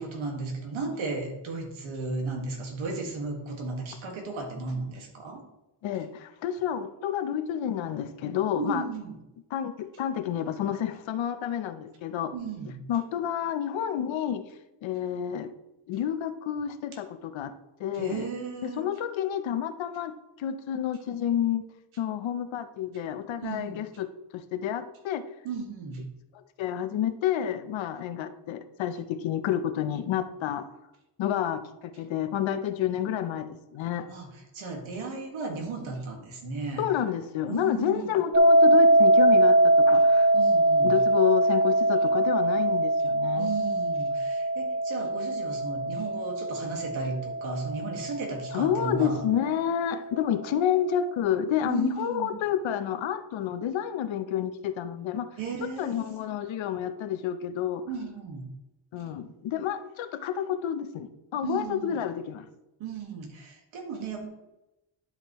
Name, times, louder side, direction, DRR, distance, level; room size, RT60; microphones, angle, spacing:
voice 1, 0.0-5.4 8.6-9.2 12.3-12.8 17.9-18.9 23.4-23.8 25.4-26.1 34.1-36.8 37.5-38.2 40.3-41.0 43.4-49.2 51.7-52.3 55.4-56.1 57.9-58.5 59.0-59.2 61.4-62.0 62.8-64.3, right 4 dB, 90° right, 1.9 m, -35 dB
voice 2, 5.8-8.8 9.5-12.3 12.9-14.5 14.8-15.5 15.9-17.5 17.8-18.2 18.8-21.7 22.0-25.2 26.3-30.7 31.2-34.1 36.8-40.3 40.8-43.5 48.5-55.3 55.8-57.9 58.9-62.5, left 10 dB, 75° left, 0.8 m, -29 dB
sound 1, 38.3-49.3, right 1 dB, 20° right, 0.6 m, -22 dB
11.5 x 5.3 x 3.1 m
cardioid pair, 130°, 46 cm